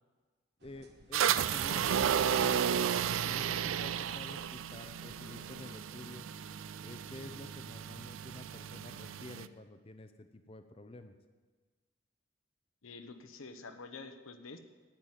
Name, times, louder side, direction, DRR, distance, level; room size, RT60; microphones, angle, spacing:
voice 1, 0.6-6.3 6.8-11.1, left 2 dB, 30° left, 8 dB, 0.5 m, -50 dB
sound 1, 0.6-5.7, right 1 dB, 55° right, 1.2 m, -59 dB
sound 2, 1.1-9.5, right 8 dB, 80° right, 0.4 m, -33 dB
voice 2, 12.8-14.6, left 3 dB, 90° left, 7 dB, 1.1 m, -48 dB
10.0 x 9.1 x 9.0 m, 1.4 s
head